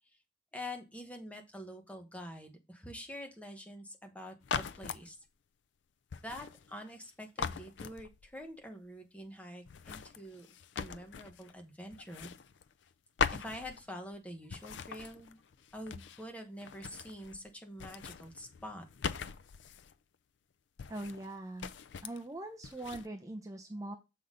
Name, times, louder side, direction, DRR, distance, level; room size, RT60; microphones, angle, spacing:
voice 1, 0.5-5.2 6.2-10.5 10.8-12.3 13.3-15.4 15.7-18.8, equal, 10° left, 4 dB, 1.1 m, -46 dB
sound 1, 4.4-5.1 6.1-7.1 7.4-8.4 9.7-11.6 11.9-12.9 13.2-14.2 14.5-16.3 16.6-17.5 17.7-19.9 20.8-21.3 21.6-22.2 22.6-23.1, left 6 dB, 80° left, 0.4 m, -40 dB
voice 2, 20.9-21.7 22.0-24.0, right 2 dB, 20° right, 3 dB, 0.6 m, -42 dB
6.9 x 3.9 x 5.1 m, 0.25 s
head